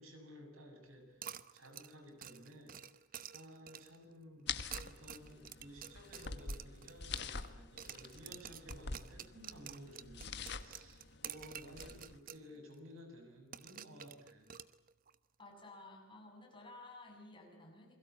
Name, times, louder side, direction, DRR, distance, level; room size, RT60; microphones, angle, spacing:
voice 1, 0.0-2.8 3.3-4.5 4.8-14.5, equal, 85° right, 5 dB, 7.3 m, -55 dB
sound 1, 1.2-4.0 4.6-7.5 7.8-12.5 12.7-12.8 13.5-15.2, right 9 dB, 45° right, 0.9 m, -50 dB
sound 2, 4.5-12.2, left 5 dB, 55° left, 1.5 m, -46 dB
voice 2, 15.4-18.0, left 2 dB, 25° left, 2 dB, 6.7 m, -54 dB
28.5 x 22.0 x 8.3 m, 0.88 s
head